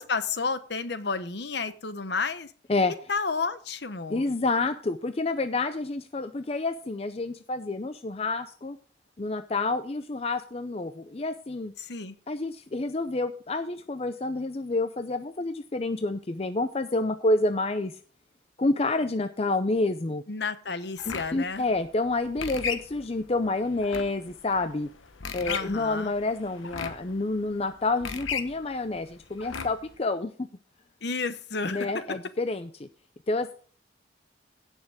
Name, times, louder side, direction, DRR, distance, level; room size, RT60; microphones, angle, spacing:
voice 1, 0.0-2.5 3.1-4.3 11.8-12.1 20.3-21.6 25.5-26.1 31.0-32.1, left 4 dB, 60° left, 12 dB, 1.0 m, -31 dB
voice 2, 4.1-8.8 9.2-11.7 12.3-17.9 18.6-20.2 21.1-24.9 25.3-30.5 31.6-32.9 33.3-33.5, left 2 dB, 30° left, 10 dB, 0.5 m, -28 dB
sound 1, 21.0-30.0, left 6 dB, 90° left, 1.2 m, -37 dB
16.5 x 6.5 x 3.6 m, 0.42 s
head